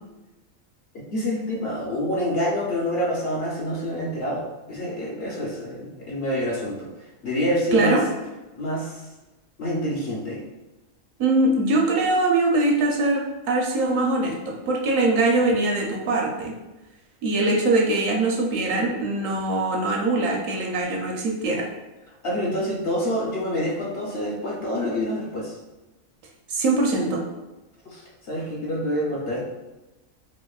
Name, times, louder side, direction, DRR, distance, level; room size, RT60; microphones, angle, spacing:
voice 1, 1.1-8.0 8.6-9.1 9.6-10.4 22.2-25.6 27.8-29.4, equal, 55° left, -4 dB, 0.7 m, -27 dB
voice 2, 11.2-16.5 17.2-21.7 26.5-27.2, right 2 dB, 70° right, -1 dB, 1.0 m, -22 dB
4.2 x 2.5 x 2.3 m, 1.1 s
omnidirectional pair, 1.5 m